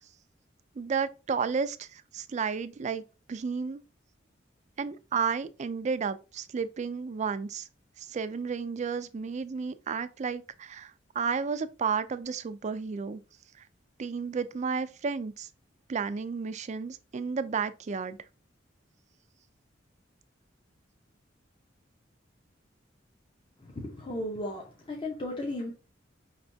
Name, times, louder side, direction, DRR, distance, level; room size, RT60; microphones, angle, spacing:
voice 1, 0.8-3.0 3.3-3.8 4.8-7.7 8.0-13.2 14.0-15.5 15.9-18.2, right 5 dB, 40° right, 0.4 m, -32 dB
voice 2, 23.6-25.7, left 1 dB, 25° left, 0.7 m, -35 dB
5.3 x 3.3 x 2.7 m
head